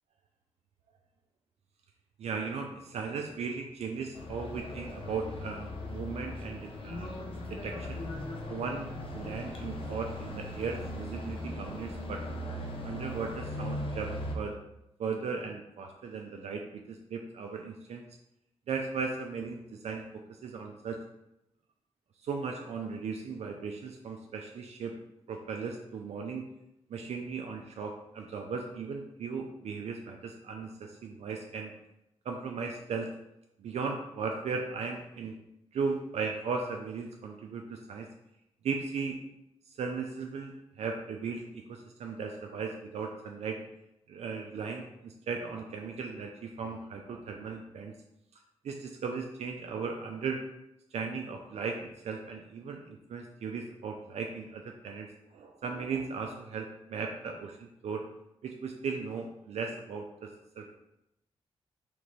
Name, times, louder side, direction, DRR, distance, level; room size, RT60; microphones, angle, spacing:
voice 1, 2.2-7.1 7.5-8.0 8.5-12.2 12.8-14.6 15.0-18.0 18.7-20.0 20.4-21.0 22.2-24.9 25.3-26.4 26.9-31.7 32.3-33.1 33.6-35.4 35.7-38.1 38.6-39.2 39.8-43.6 44.1-47.9 48.6-50.4 50.9-58.1 58.4-60.3 60.6-60.7, right 5 dB, 75° right, 3 dB, 0.4 m, -37 dB
sound 1, 4.1-14.4, left 1 dB, 55° left, 0.7 m, -39 dB
3.3 x 3.2 x 4.0 m, 0.86 s
cardioid pair, 85°, 11 cm